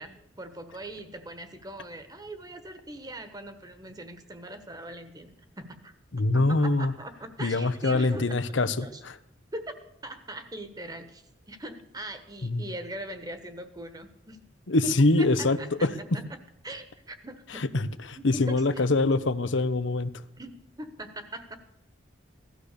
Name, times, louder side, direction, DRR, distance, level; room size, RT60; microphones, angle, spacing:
voice 1, 0.0-8.4 8.8-9.0 9.5-9.7 10.0-14.4 14.8-16.4 16.6-17.7 18.1-18.8 20.4-21.6, right 1 dB, 20° right, 9 dB, 1.3 m, -41 dB
voice 2, 6.1-6.9 7.4-9.2 12.4-12.6 14.7-16.0 17.5-20.1, left 2 dB, 85° left, 12 dB, 0.9 m, -24 dB
16.5 x 12.5 x 6.7 m, 0.80 s
head